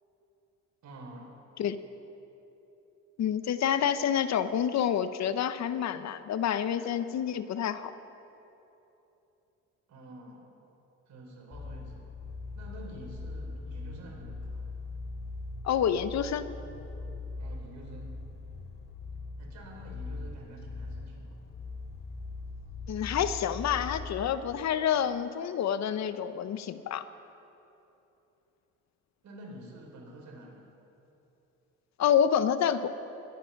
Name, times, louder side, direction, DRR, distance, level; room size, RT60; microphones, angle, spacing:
voice 1, 0.8-1.4 9.9-10.5 11.1-12.1 12.5-14.6 17.4-18.2 19.4-21.4 29.2-30.6, right 1 dB, 65° right, -1 dB, 4.5 m, -48 dB
voice 2, 3.2-7.9 15.6-16.5 22.9-27.0 32.0-32.9, left 9 dB, 65° left, 12 dB, 0.8 m, -28 dB
sound 1, 11.5-24.3, left 3 dB, 45° left, 2.6 m, -41 dB
21.0 x 10.5 x 5.9 m, 2.9 s
cardioid pair, 90°, 30 cm